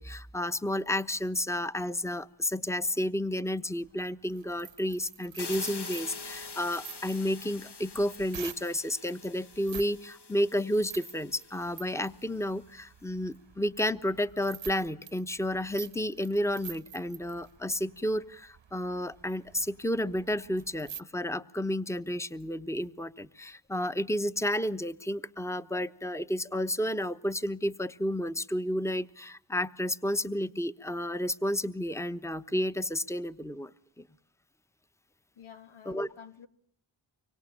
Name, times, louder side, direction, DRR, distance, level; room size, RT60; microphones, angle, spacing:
voice 1, 0.0-33.7 35.9-36.1, left 1 dB, 5° left, 1.1 m, -31 dB
sound 1, 3.8-8.9 9.5-10.0 10.2-21.0, right 8 dB, 65° right, 1.0 m, -48 dB
sound 2, 5.4-12.2, left 4 dB, 55° left, 1.7 m, -45 dB
voice 2, 35.4-36.5, left 7 dB, 90° left, 1.6 m, -49 dB
25.0 x 24.5 x 9.0 m
cardioid pair, 50°, 47 cm